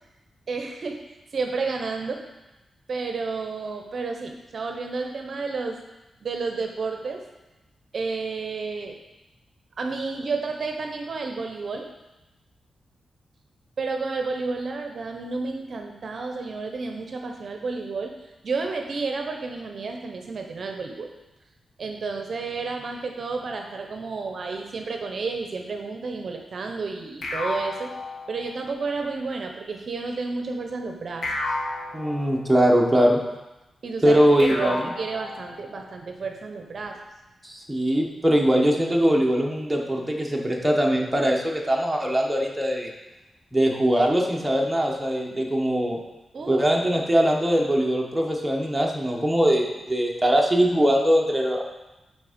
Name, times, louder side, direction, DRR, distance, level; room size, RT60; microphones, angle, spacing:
voice 1, 0.5-1.0 1.3-2.2 2.9-5.8 6.2-7.2 7.9-9.0 9.8-11.8 13.8-18.1 18.4-21.1 21.8-27.9 28.3-31.3 33.8-37.0 46.3-46.6, right 4 dB, 50° right, 3 dB, 0.6 m, -31 dB
sound 1, 27.2-28.8 31.2-32.8 34.4-35.9, left 2 dB, 70° left, 1.0 m, -33 dB
voice 2, 31.9-33.2 34.0-34.8 37.4-42.9 43.5-46.0 46.5-51.6, equal, 5° right, -1 dB, 0.8 m, -21 dB
5.9 x 4.3 x 5.0 m, 1.0 s
wide cardioid pair, 150°, 0 cm